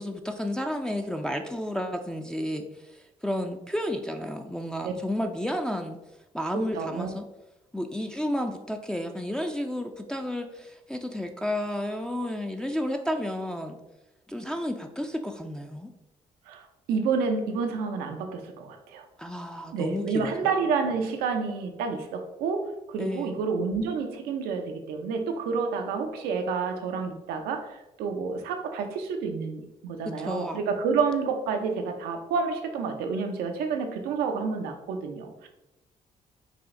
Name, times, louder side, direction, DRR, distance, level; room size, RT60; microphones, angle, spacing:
voice 1, 0.0-6.0 6.3-7.2 7.7-13.8 14.3-15.9 19.2-20.3 23.0-23.4 30.2-30.6, left 1 dB, 5° left, 4 dB, 0.4 m, -32 dB
voice 2, 6.5-7.1 16.5-19.0 19.7-35.5, right 5 dB, 85° right, 5 dB, 0.6 m, -29 dB
5.0 x 2.4 x 3.6 m, 0.98 s
supercardioid pair, 60°, 15 cm